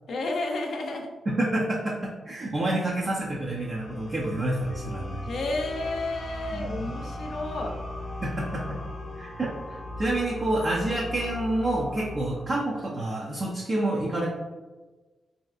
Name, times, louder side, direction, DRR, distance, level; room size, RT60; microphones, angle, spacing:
voice 1, 0.1-1.1 5.3-7.8, left 2 dB, 70° left, 2 dB, 0.5 m, -31 dB
voice 2, 1.3-1.9 2.2-5.2 6.5-6.8 8.2-8.8 9.2-14.3, right 1 dB, 35° right, -5 dB, 0.5 m, -28 dB
sound 1, 3.2-12.6, left 1 dB, 30° left, 0.8 m, -38 dB
3.2 x 2.7 x 2.4 m, 1.2 s
cardioid pair, 95°, 0 cm